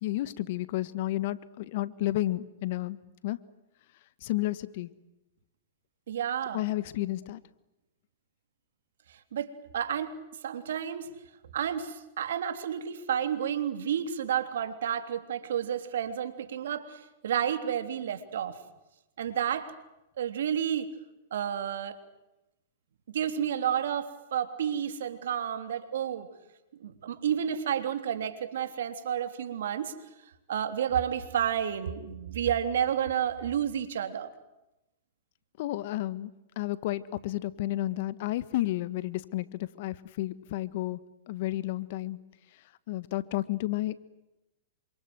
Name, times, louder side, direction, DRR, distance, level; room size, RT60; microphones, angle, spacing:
voice 1, 0.0-3.0 3.2-3.4 4.2-4.9 6.5-7.4 35.6-41.0 41.3-42.2 42.9-44.0, left 16 dB, 60° left, 16 dB, 1.5 m, -31 dB
voice 2, 6.1-6.6 9.3-10.1 10.4-11.1 11.5-18.6 19.2-19.7 20.2-20.9 21.3-22.0 23.1-26.3 26.8-29.9 30.5-34.3, right 9 dB, 75° right, 9 dB, 3.3 m, -31 dB
28.0 x 26.0 x 8.0 m, 0.95 s
hypercardioid pair, 120°, 0 cm